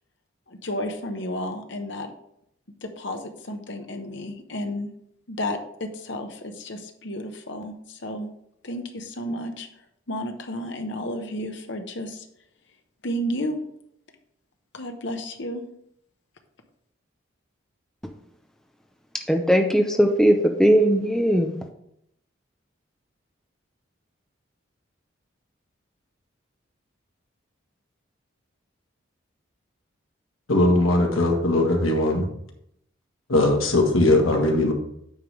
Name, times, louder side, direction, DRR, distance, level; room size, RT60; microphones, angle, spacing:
voice 1, 0.5-2.1 2.8-4.9 5.3-8.3 8.6-9.7 10.1-12.3 13.0-13.6 14.7-15.6, equal, 60° left, 5 dB, 1.0 m, -32 dB
voice 2, 19.3-21.5, equal, 5° left, 3 dB, 0.5 m, -19 dB
voice 3, 30.5-32.2 33.3-34.7, left 2 dB, 90° left, 2 dB, 1.6 m, -20 dB
9.2 x 3.4 x 6.1 m, 0.74 s
head